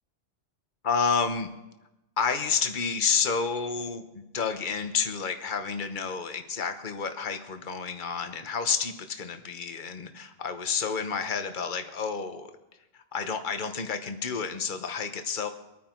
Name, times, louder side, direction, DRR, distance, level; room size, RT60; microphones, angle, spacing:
voice 1, 0.8-1.5 2.2-12.5 13.1-15.5, left 5 dB, 45° left, 7 dB, 1.2 m, -30 dB
24.0 x 9.5 x 4.5 m, 0.98 s
omnidirectional pair, 1.1 m